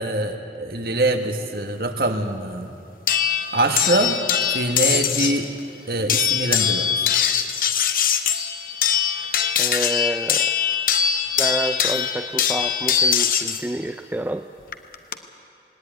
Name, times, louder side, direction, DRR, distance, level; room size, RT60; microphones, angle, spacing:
voice 1, 0.0-2.7 3.5-4.2 4.5-5.5 5.9-7.1, right 2 dB, 55° right, 5 dB, 1.6 m, -24 dB
sound 1, 3.1-5.4 6.1-13.6 14.7-15.1, left 8 dB, 50° left, 1.0 m, -22 dB
voice 2, 9.6-10.6 11.4-14.5, right 1 dB, 10° right, 7 dB, 0.4 m, -28 dB
19.0 x 19.0 x 9.3 m, 2.7 s
head